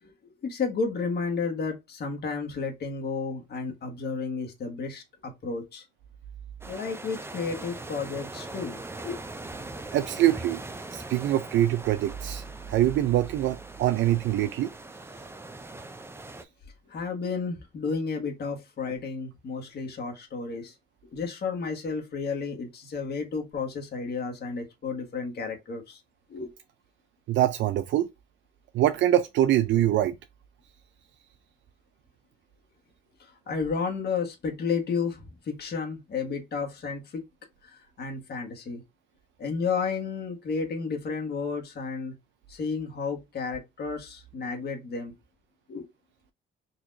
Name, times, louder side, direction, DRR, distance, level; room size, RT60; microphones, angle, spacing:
voice 1, 0.0-5.8 6.7-9.2 16.8-20.7 21.1-26.0 26.3-26.5 33.2-37.2 37.6-38.8 39.4-42.1 42.5-45.1 45.7-45.9, left 5 dB, 55° left, 1.5 m, -32 dB
sound 1, 6.6-16.4, right 2 dB, 10° right, 0.5 m, -41 dB
voice 2, 9.9-10.6 10.9-14.7 27.3-28.1 28.7-30.2, right 13 dB, 70° right, 0.4 m, -24 dB
4.1 x 2.8 x 2.6 m
cardioid pair, 90°, 20 cm